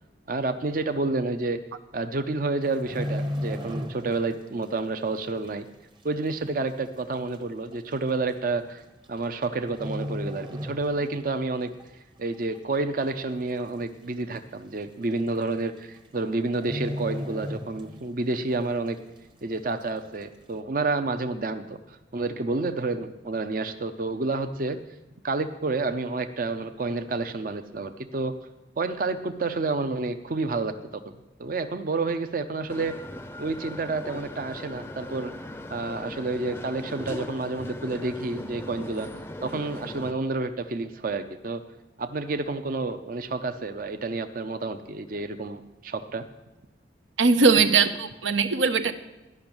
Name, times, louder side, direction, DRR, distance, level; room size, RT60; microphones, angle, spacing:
voice 1, 0.3-1.6 1.9-5.7 6.0-8.8 9.1-11.7 12.2-19.0 19.4-21.8 22.1-24.8 25.2-28.4 28.8-33.0 33.4-35.3 35.7-39.1 39.4-41.6 42.0-46.3, right 3 dB, 50° right, 9 dB, 0.5 m, -29 dB
sound 1, 2.6-4.4 4.6-4.9 5.5-5.6 6.5-6.6 6.8-6.9 7.7-7.9 9.0-9.4 9.7-11.3 11.6-11.8 12.3-12.9 13.2-13.3 13.5-13.6 14.0-14.1 15.1-15.2 15.5-15.8 16.0-16.2 16.6-18.2 18.6-18.7, left 1 dB, 25° right, 0.8 m, -34 dB
sound 2, 32.7-40.1, left 1 dB, 10° left, 0.5 m, -39 dB
voice 2, 47.2-48.9, right 4 dB, 90° right, 10 dB, 0.7 m, -20 dB
12.0 x 6.0 x 8.7 m, 1.1 s
head